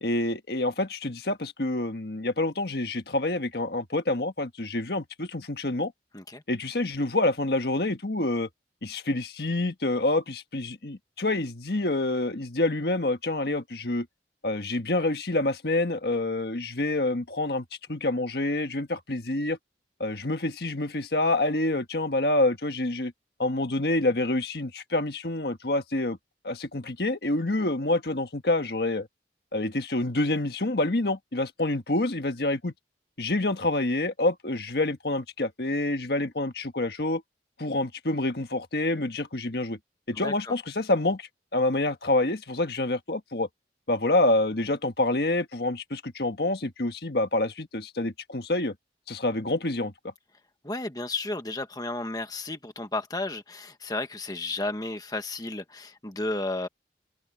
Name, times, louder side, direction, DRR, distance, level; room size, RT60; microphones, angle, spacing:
voice 1, 0.0-5.9 6.5-8.5 8.8-14.1 14.4-19.6 20.0-23.1 23.4-26.2 26.4-29.1 29.5-32.7 33.2-37.2 37.6-39.8 40.1-43.5 43.9-48.7 49.1-49.9, left 2 dB, 60° left, 1.5 m, -27 dB
voice 2, 40.2-40.5 50.6-56.7, left 2 dB, 20° left, 1.4 m, -33 dB
open air
head